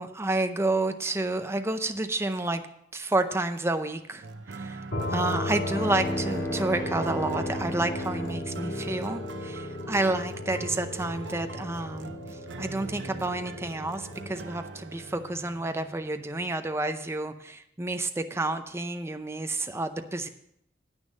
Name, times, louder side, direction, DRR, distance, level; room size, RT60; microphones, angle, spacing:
voice 1, 0.0-2.6 2.9-20.3, right 2 dB, 15° right, 8 dB, 0.6 m, -30 dB
sound 1, 4.2-16.5, right 3 dB, 75° right, 0.7 m, -43 dB
sound 2, 4.9-14.4, left 1 dB, 70° left, 2.1 m, -35 dB
Bowed string instrument, 5.6-10.2, right 1 dB, 15° left, 1.1 m, -38 dB
9.7 x 9.2 x 5.3 m, 0.72 s
head